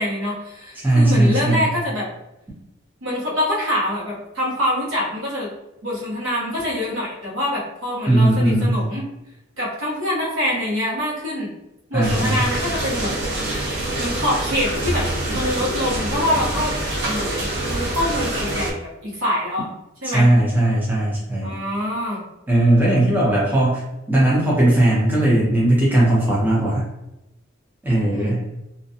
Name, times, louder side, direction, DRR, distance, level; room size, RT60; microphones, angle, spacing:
voice 1, 0.0-2.1 3.0-5.5 5.8-9.0 9.6-11.5 11.9-13.2 14.0-16.7 17.0-19.7 20.0-20.3 21.4-22.2 28.1-28.5, left 1 dB, 75° right, -5 dB, 1.0 m, -25 dB
voice 2, 0.8-1.7 8.1-8.8 11.9-12.5 20.0-21.5 22.5-23.8 24.1-26.8 27.8-28.4, right 1 dB, 10° right, -7 dB, 0.6 m, -18 dB
sound 1, 12.0-18.7, right 1 dB, 55° right, 0.6 m, -25 dB
2.5 x 2.1 x 2.7 m, 0.92 s
head